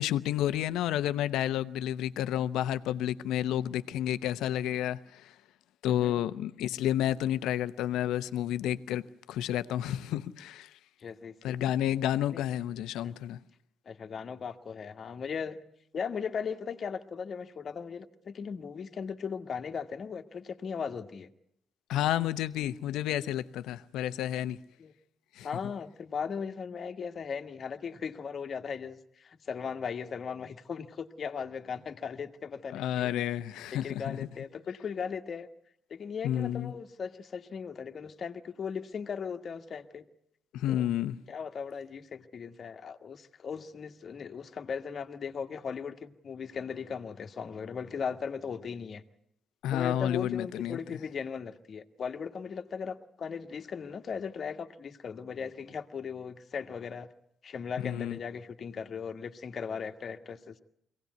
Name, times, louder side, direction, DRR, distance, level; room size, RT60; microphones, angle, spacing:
voice 1, 0.0-5.3 5.8-10.7 11.4-13.4 21.9-24.6 25.4-25.5 32.7-34.3 36.2-36.7 40.5-41.2 49.6-50.8 57.8-58.2, left 12 dB, 90° left, 0.8 m, -30 dB
voice 2, 5.8-6.2 11.0-11.6 12.3-12.4 13.0-13.1 13.8-15.6 15.9-21.3 24.8-24.9 25.4-33.1 33.7-35.5 35.9-40.0 40.7-40.9 41.3-49.0 49.7-57.1 57.4-60.6, left 6 dB, 50° left, 1.6 m, -38 dB
23.0 x 17.5 x 9.4 m
cardioid pair, 90°, 0 cm